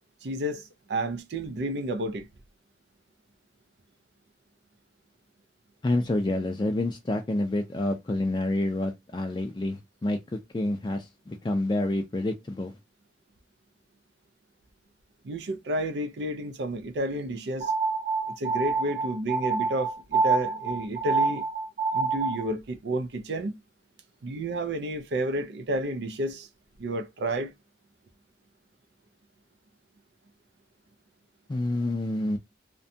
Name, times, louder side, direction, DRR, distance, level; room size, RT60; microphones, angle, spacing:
voice 1, 0.2-2.3 15.2-17.7 18.4-21.4 21.9-23.6 24.2-26.5 26.8-27.5, right 1 dB, 75° right, 0.4 m, -31 dB
voice 2, 5.8-12.7 31.5-32.4, left 1 dB, 25° left, 0.3 m, -28 dB
sound 1, 17.6-22.5, right 4 dB, 40° right, 0.7 m, -27 dB
2.6 x 2.2 x 2.5 m
head